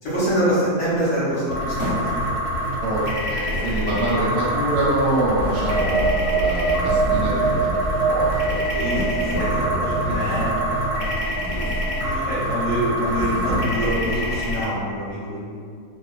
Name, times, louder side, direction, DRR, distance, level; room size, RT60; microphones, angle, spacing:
voice 1, 0.0-2.1 8.7-11.0 11.5-11.6 11.9-15.6, equal, 55° left, -10 dB, 1.0 m, -25 dB
sound 1, 1.5-14.6, equal, 85° left, 1.1 m, -26 dB
sound 2, 1.8-2.4 3.5-4.4 5.4-6.1 6.7-7.5 7.9-8.1 9.0-9.7 10.1-10.7 11.4-11.9 12.3-12.6 13.1-13.9, left 1 dB, 40° right, 0.6 m, -31 dB
voice 2, 2.8-8.9 9.3-10.2, right 1 dB, 70° right, -7 dB, 0.9 m, -26 dB
sound 3, 5.2-12.8, right 4 dB, 90° right, 1.1 m, -26 dB
2.4 x 2.1 x 2.3 m, 2.1 s
omnidirectional pair, 1.6 m